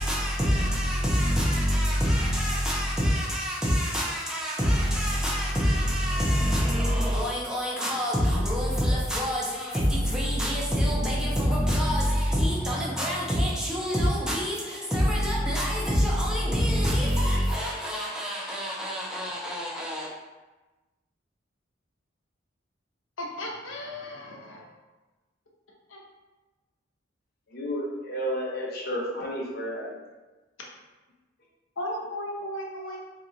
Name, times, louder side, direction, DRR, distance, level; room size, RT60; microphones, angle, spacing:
voice 1, 0.0-20.1, equal, 5° right, -5 dB, 0.8 m, -26 dB
voice 2, 23.2-24.7 25.9-26.0 31.8-33.1, left 1 dB, 85° left, -2 dB, 0.9 m, -35 dB
voice 3, 27.5-29.9, equal, 50° left, -3 dB, 1.0 m, -31 dB
3.9 x 3.0 x 3.9 m, 1.2 s
head